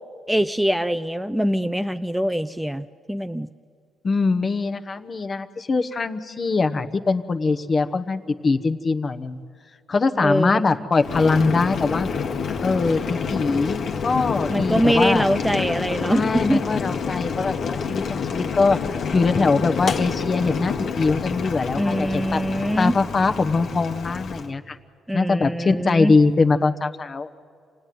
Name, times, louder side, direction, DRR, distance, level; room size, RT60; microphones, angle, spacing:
voice 1, 0.3-3.5 10.2-10.6 14.5-16.6 21.8-23.0 25.1-26.1, equal, 5° right, 10 dB, 0.5 m, -23 dB
voice 2, 4.0-9.4 9.9-12.1 12.6-15.3 16.1-18.8 19.1-22.4 22.8-24.8 25.1-27.3, left 4 dB, 35° left, 8 dB, 1.1 m, -22 dB
Boiling, 11.0-24.5, left 5 dB, 60° left, 1.4 m, -28 dB
27.5 x 17.5 x 9.4 m, 2.2 s
cardioid pair, 90°, 0 cm